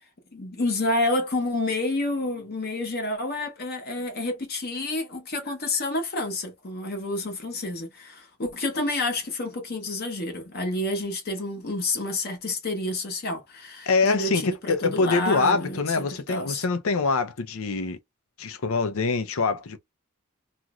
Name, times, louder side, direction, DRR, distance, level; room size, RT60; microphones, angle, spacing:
voice 1, 0.3-16.6, left 2 dB, 50° left, 0.9 m, -29 dB
voice 2, 13.9-18.0 18.4-19.8, left 4 dB, 80° left, 0.6 m, -24 dB
3.0 x 2.5 x 2.3 m
head